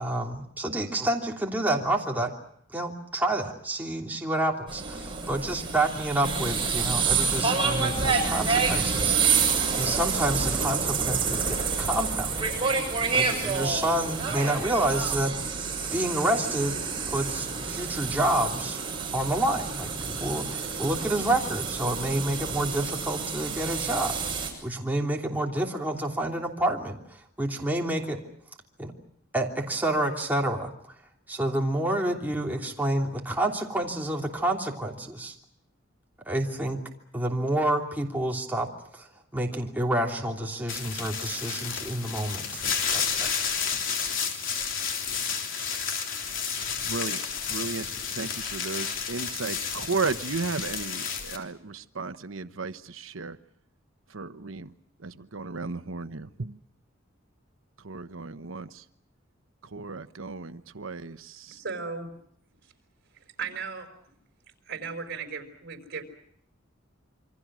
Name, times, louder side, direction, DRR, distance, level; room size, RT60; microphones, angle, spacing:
voice 1, 0.0-2.3 2.7-9.2 9.7-12.5 13.1-15.6 15.9-16.8 17.1-18.8 19.1-28.2 28.8-28.9 29.3-30.7 31.3-35.3 36.3-36.8 37.1-38.7 38.9-39.1 39.3-43.3, right 1 dB, 10° right, 3.0 m, -29 dB
sound 1, 4.7-24.5, right 5 dB, 25° right, 7.3 m, -28 dB
sound 2, 40.7-51.4, left 6 dB, 70° left, 3.6 m, -31 dB
voice 2, 46.9-47.2 47.5-47.9 48.1-53.4 54.1-54.7 55.0-56.6 57.8-58.8 59.7-61.6, right 4 dB, 80° right, 1.0 m, -34 dB
voice 3, 61.5-62.1 63.4-63.9 64.7-66.0, right 5 dB, 55° right, 5.0 m, -35 dB
28.0 x 25.0 x 6.2 m
head